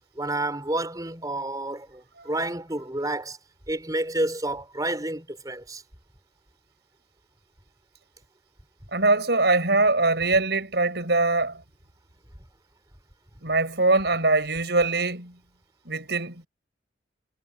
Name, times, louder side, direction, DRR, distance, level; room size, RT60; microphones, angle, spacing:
voice 1, 0.2-3.4 3.7-5.8, right 1 dB, 20° right, 5.2 m, -29 dB
voice 2, 8.9-11.6 13.4-15.4 15.8-16.5, right 3 dB, 60° right, 8.0 m, -22 dB
head